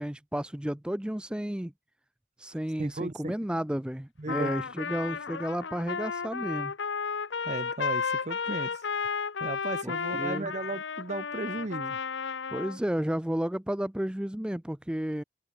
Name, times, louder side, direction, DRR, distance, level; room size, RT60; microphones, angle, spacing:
voice 1, 0.0-1.7 2.4-6.7 9.8-10.5 12.5-15.2, equal, 5° right, 0.4 m, -32 dB
voice 2, 2.8-3.4 4.2-4.5 7.4-8.7 9.4-12.0, right 2 dB, 40° right, 0.7 m, -35 dB
Trumpet, 4.3-12.8, left 5 dB, 75° left, 0.9 m, -33 dB
head